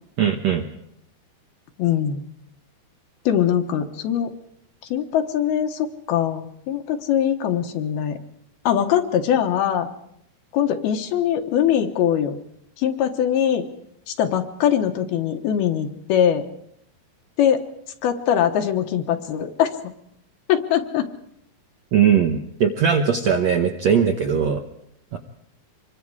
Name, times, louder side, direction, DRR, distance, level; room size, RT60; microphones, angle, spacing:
voice 1, 0.2-0.6 21.9-24.6 25.1-25.2, right 7 dB, 70° right, 4 dB, 1.6 m, -19 dB
voice 2, 1.8-2.2 3.3-4.3 4.9-8.2 8.7-9.9 10.5-12.4 12.8-13.6 14.1-16.4 17.4-17.6 18.0-19.7 20.5-21.1, left 9 dB, 80° left, 5 dB, 3.1 m, -22 dB
26.0 x 22.5 x 4.9 m, 0.74 s
omnidirectional pair, 4.6 m